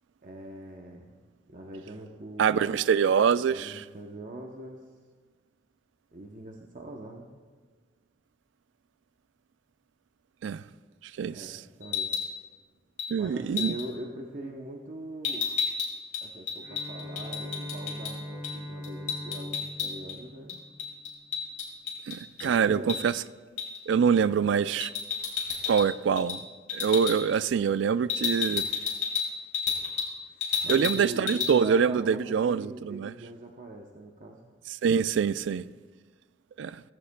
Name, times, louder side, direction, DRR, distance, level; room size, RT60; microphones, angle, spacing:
voice 1, 0.2-1.2 1.5-2.8 3.5-4.8 6.1-7.3 11.3-12.1 13.2-15.5 16.2-20.6 22.4-23.0 30.6-34.5, right 1 dB, 45° right, 0.8 m, -42 dB
voice 2, 2.4-3.8 10.4-10.6 11.2-11.6 13.1-13.8 22.1-23.1 23.9-24.9 25.7-26.4 26.7-28.6 30.7-33.1 34.8-35.6 36.6-36.8, right 7 dB, 85° right, 0.3 m, -25 dB
sound 1, 11.8-12.3 13.0-13.1 13.6-13.9 15.2-18.1 18.4-18.6 18.8-20.2 20.5-22.5 22.9-23.0 23.6-23.8 24.8-25.9 26.2-26.4 26.7-27.2 28.1-30.1 30.4-31.0 31.3-31.5, left 6 dB, 45° left, 2.1 m, -31 dB
Bowed string instrument, 16.6-21.3, left 1 dB, 20° right, 2.7 m, -41 dB
15.5 x 15.0 x 2.2 m
head